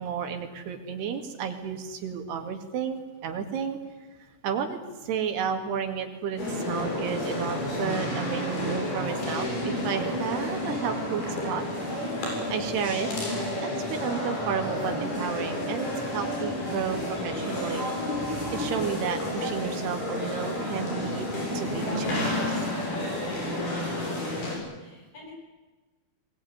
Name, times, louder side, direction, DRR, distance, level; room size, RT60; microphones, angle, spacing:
voice 1, 0.0-3.8 4.4-11.6 12.2-13.1 13.6-17.9 18.5-22.6, right 7 dB, 90° right, 6 dB, 4.4 m, -32 dB
sound 1, 6.4-24.6, left 1 dB, 75° left, 9.3 m, -30 dB
voice 2, 23.7-25.3, left 1 dB, 55° left, 0 dB, 9.6 m, -44 dB
21.5 x 21.5 x 9.8 m, 1.2 s
omnidirectional pair, 4.6 m